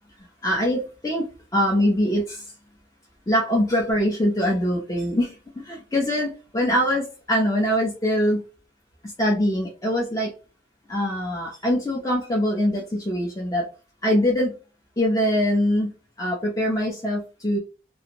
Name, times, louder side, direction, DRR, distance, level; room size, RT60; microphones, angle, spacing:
voice 1, 0.4-2.5 3.3-8.4 9.0-10.3 10.9-13.7 14.0-14.6 15.0-17.6, equal, 20° left, -2 dB, 0.5 m, -23 dB
2.5 x 2.0 x 2.8 m, 0.32 s
head